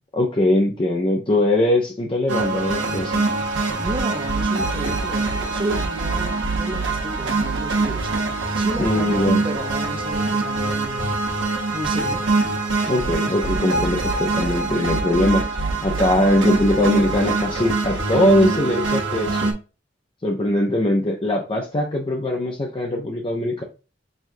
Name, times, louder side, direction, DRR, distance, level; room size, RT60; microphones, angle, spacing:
voice 1, 0.1-3.2 8.8-9.4 12.8-19.5 20.2-23.6, left 1 dB, 30° left, 0.5 m, -21 dB
sound 1, 2.3-19.5, right 3 dB, 85° right, 1.1 m, -24 dB
voice 2, 3.8-8.2 8.5-11.2 11.7-12.3, right 1 dB, 30° right, 0.6 m, -32 dB
6.3 x 2.4 x 2.6 m
head